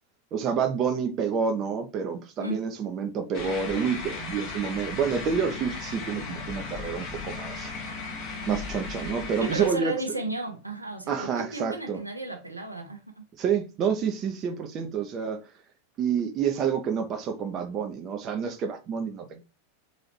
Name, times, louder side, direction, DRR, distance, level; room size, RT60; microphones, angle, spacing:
voice 1, 0.3-7.7 8.5-9.9 11.1-12.0 13.4-15.4 16.0-19.4, right 6 dB, 30° right, 0.8 m, -28 dB
sound 1, 3.3-9.7, left 4 dB, 45° left, 1.6 m, -36 dB
voice 2, 9.4-13.2, right 3 dB, 85° right, 0.9 m, -33 dB
4.0 x 3.9 x 3.3 m
figure-of-eight pair, 90°, 0 cm